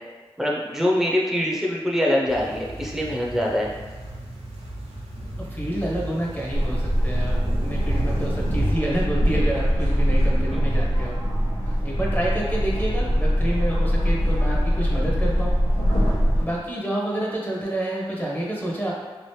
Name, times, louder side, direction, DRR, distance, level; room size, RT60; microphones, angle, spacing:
voice 1, 0.4-3.7 10.5-10.7, equal, 5° right, -3 dB, 0.7 m, -24 dB
sound 1, 2.3-8.7, right 1 dB, 85° right, 0.7 m, -32 dB
voice 2, 5.5-7.3 7.6-11.2 11.8-15.5 16.4-18.9, right 1 dB, 15° left, -4 dB, 1.0 m, -28 dB
sound 2, 6.5-16.4, equal, 90° left, 1.1 m, -22 dB
3.0 x 2.5 x 3.2 m, 1.4 s
cardioid pair, 45°, 10 cm